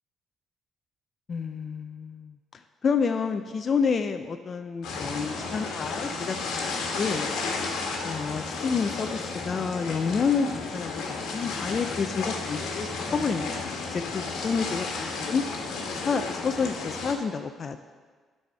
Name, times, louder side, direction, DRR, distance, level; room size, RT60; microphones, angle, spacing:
voice 1, 1.3-2.4 2.8-7.3 8.0-15.4 16.0-17.8, left 5 dB, 40° left, 7 dB, 0.3 m, -29 dB
sound 1, 4.8-17.1, left 4 dB, 90° left, 1.2 m, -33 dB
11.5 x 4.1 x 4.7 m, 1.5 s
cardioid pair, 120°, 0 cm